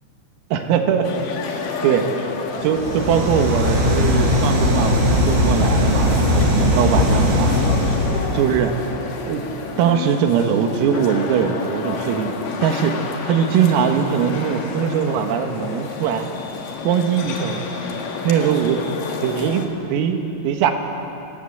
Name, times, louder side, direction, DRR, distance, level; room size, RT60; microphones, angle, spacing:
voice 1, 0.5-1.1 1.8-2.1 2.6-7.5 8.3-8.8 9.3-9.4 9.8-13.0 13.2-16.3 16.9-17.6 18.3-18.8 19.2-20.7, right 8 dB, 90° right, 5 dB, 4.3 m, -21 dB
sound 1, 1.0-19.7, left 5 dB, 55° left, 2.8 m, -30 dB
sound 2, 2.7-8.4, left 1 dB, 55° right, 5.1 m, -19 dB
30.0 x 18.5 x 7.9 m, 2.9 s
omnidirectional pair, 5.9 m